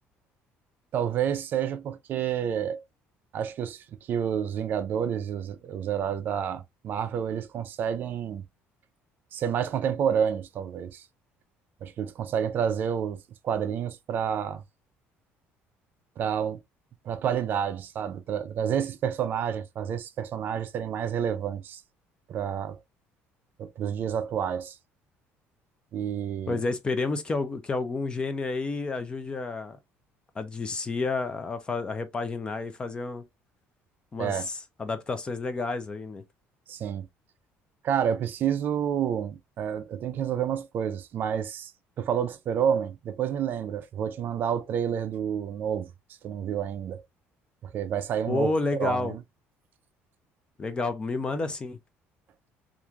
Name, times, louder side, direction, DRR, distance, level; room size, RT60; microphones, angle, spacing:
voice 1, 0.9-2.8 3.3-8.4 9.3-11.0 11.8-14.6 16.2-16.6 17.1-21.8 22.3-22.8 23.6-24.8 25.9-26.6 34.2-34.5 36.7-37.1 37.8-41.7 42.0-45.9 46.2-47.0 47.6-48.5 48.8-49.2, right 8 dB, 45° right, 0.4 m, -29 dB
voice 2, 26.5-29.8 30.4-33.2 34.1-36.2 48.3-49.1 50.6-51.8, left 3 dB, 20° left, 0.4 m, -30 dB
3.1 x 2.4 x 2.2 m
cardioid pair, 155°, 5 cm